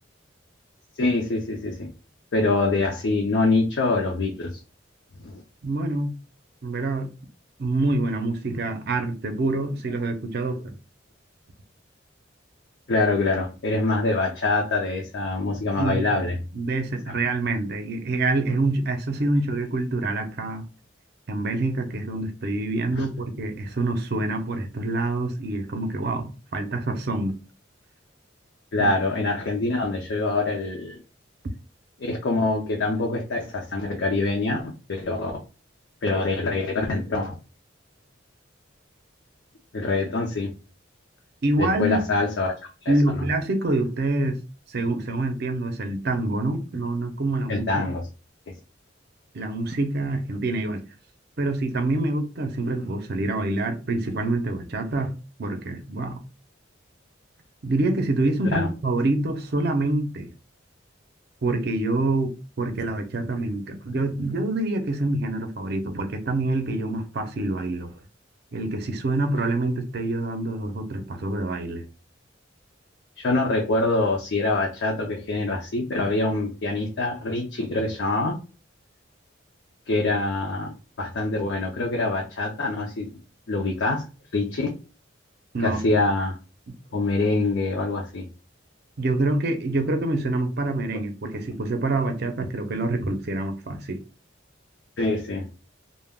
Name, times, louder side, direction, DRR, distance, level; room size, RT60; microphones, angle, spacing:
voice 1, 1.0-1.9 2.3-4.5 5.2-5.4 12.9-16.4 23.0-23.1 28.7-31.0 32.0-35.4 36.0-37.4 39.7-40.5 41.6-42.5 42.8-43.2 47.5-48.0 58.5-58.7 73.2-78.4 79.9-83.2 83.5-84.1 84.3-84.8 85.6-86.3 86.9-88.3 95.0-95.5, left 2 dB, 60° left, 0.5 m, -25 dB
voice 2, 5.6-6.1 6.6-7.1 7.6-10.7 15.8-16.1 16.5-20.6 21.3-27.3 28.8-28.9 41.4-42.0 42.9-44.4 44.7-47.8 49.3-50.8 51.4-55.1 55.4-56.2 57.6-60.3 61.4-67.9 68.5-71.8 85.5-86.0 89.0-94.0, right 2 dB, 55° right, 0.5 m, -26 dB
2.2 x 2.1 x 3.4 m
head